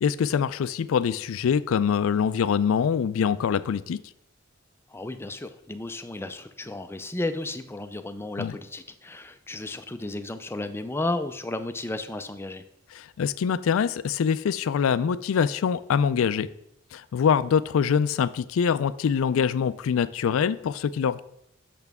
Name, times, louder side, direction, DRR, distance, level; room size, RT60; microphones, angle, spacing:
voice 1, 0.0-4.0 8.4-8.6 12.9-16.5 16.9-21.2, left 7 dB, 75° left, 16 dB, 0.3 m, -24 dB
voice 2, 4.9-12.6, left 2 dB, 10° left, 9 dB, 0.4 m, -33 dB
8.1 x 6.6 x 3.5 m, 0.78 s
head